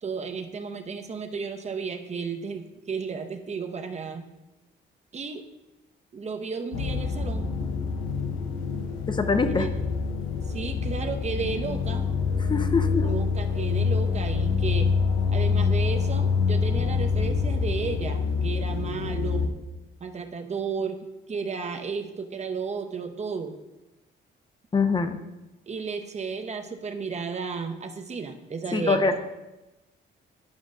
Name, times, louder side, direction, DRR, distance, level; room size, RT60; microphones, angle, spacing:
voice 1, 0.0-4.2 5.1-5.5 6.1-7.5 9.5-9.7 10.5-12.1 13.0-14.9 15.3-19.5 20.0-23.5 25.7-29.0, right 5 dB, 35° right, 5 dB, 0.8 m, -33 dB
sound 1, 6.7-19.5, left 5 dB, 85° left, 0.7 m, -26 dB
voice 2, 9.1-9.7 12.4-13.1 24.7-25.2 28.7-29.3, left 4 dB, 25° left, 8 dB, 0.7 m, -24 dB
11.5 x 5.1 x 2.5 m, 1.0 s
cardioid pair, 90°, 20 cm